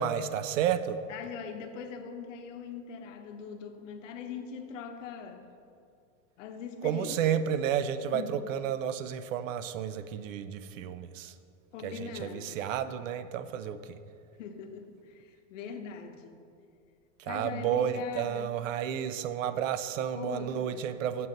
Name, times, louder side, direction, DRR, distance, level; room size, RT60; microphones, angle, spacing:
voice 1, 0.0-1.0 6.8-11.3 11.8-14.0 17.2-21.3, right 9 dB, 80° right, 12 dB, 0.5 m, -31 dB
voice 2, 1.1-5.4 6.4-7.2 8.1-8.4 11.7-12.7 14.4-16.4 17.2-18.5 20.1-20.8, left 6 dB, 75° left, 6 dB, 0.8 m, -41 dB
7.6 x 5.4 x 3.9 m, 2.4 s
supercardioid pair, 165°, 38 cm